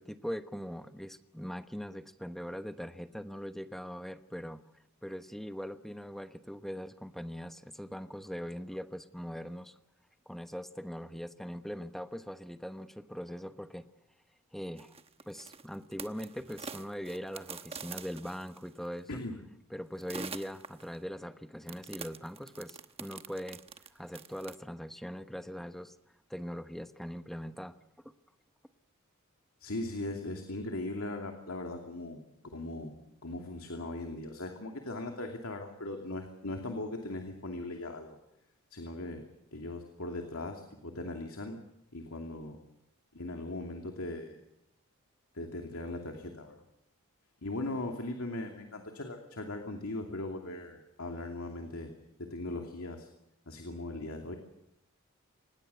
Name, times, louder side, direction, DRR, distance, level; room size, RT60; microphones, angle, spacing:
voice 1, 0.0-4.6 5.0-9.7 10.3-13.9 14.5-14.9 15.3-19.2 19.7-23.6 23.9-25.9 26.3-27.8, equal, ahead, 9 dB, 1.0 m, -41 dB
sound 1, 14.8-18.9 20.0-21.0 21.7-24.6, right 5 dB, 25° right, 1.1 m, -45 dB
voice 2, 29.6-32.2 32.5-32.9 33.2-38.2 38.7-39.2 39.5-41.6 41.9-42.6 43.1-44.4 45.3-46.6 47.4-51.9 52.2-53.1 53.5-54.4, left 2 dB, 70° left, 3 dB, 2.7 m, -39 dB
26.0 x 20.0 x 7.0 m, 0.84 s
head